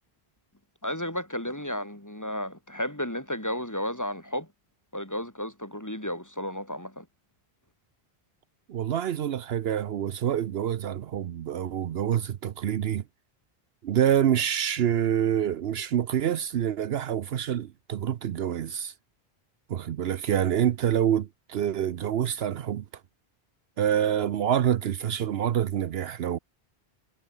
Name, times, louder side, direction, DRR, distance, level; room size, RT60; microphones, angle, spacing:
voice 1, 0.8-4.5 4.9-7.1, left 1 dB, 15° left, 3.7 m, -33 dB
voice 2, 8.7-13.0 13.8-18.9 19.7-22.8 23.8-26.4, right 10 dB, 70° right, 0.9 m, -26 dB
omnidirectional pair, 1.1 m